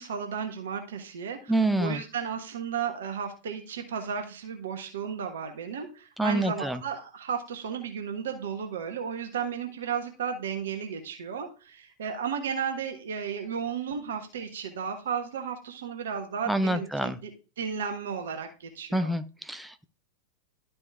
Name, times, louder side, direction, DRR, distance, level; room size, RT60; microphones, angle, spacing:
voice 1, 0.0-17.3 17.6-19.1, right 7 dB, 60° right, 5 dB, 1.3 m, -34 dB
voice 2, 1.5-2.0 6.2-6.8 16.5-17.2 18.9-19.8, right 1 dB, 5° right, 9 dB, 0.7 m, -27 dB
12.0 x 4.3 x 3.5 m, 0.35 s
figure-of-eight pair, 90°, 0 cm